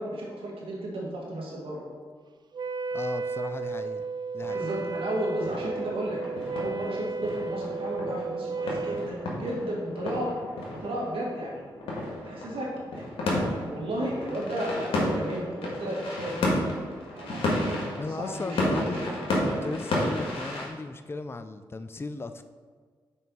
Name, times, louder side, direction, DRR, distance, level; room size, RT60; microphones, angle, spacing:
voice 1, 0.0-1.8 4.5-10.3 10.7-11.6 12.2-16.5 17.1-19.7, right 1 dB, 75° right, -2 dB, 1.9 m, -34 dB
Wind instrument woodwind instrument, 2.5-9.2, right 4 dB, 50° right, 0.4 m, -33 dB
voice 2, 2.9-4.1 4.3-4.7 18.0-19.0 19.4-22.4, left 3 dB, 25° left, 10 dB, 0.4 m, -36 dB
sound 1, 4.4-20.7, left 1 dB, 80° left, 1.6 m, -32 dB
5.5 x 4.5 x 5.3 m, 1.6 s
cardioid pair, 50°, 9 cm